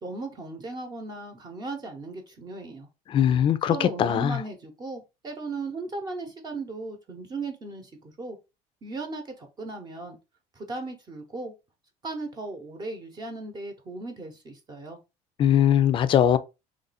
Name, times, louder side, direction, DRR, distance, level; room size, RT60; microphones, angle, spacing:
voice 1, 0.0-2.9 3.7-8.4 8.8-10.2 10.5-11.5 12.0-15.0, right 3 dB, 30° right, 0.9 m, -37 dB
voice 2, 3.1-4.4 15.4-16.4, left 10 dB, 40° left, 0.4 m, -21 dB
3.1 x 2.6 x 4.1 m
cardioid pair, 120°, 14 cm